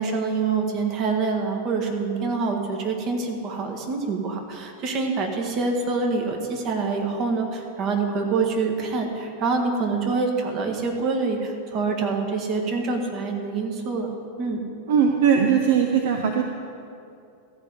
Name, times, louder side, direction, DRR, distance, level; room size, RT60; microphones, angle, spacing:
voice 1, 0.0-14.1 14.4-14.6, right 4 dB, 35° right, 2 dB, 1.6 m, -26 dB
voice 2, 14.9-16.4, right 7 dB, 55° right, 3 dB, 0.7 m, -19 dB
14.0 x 5.4 x 8.0 m, 2.6 s
figure-of-eight pair, 90°, 0 cm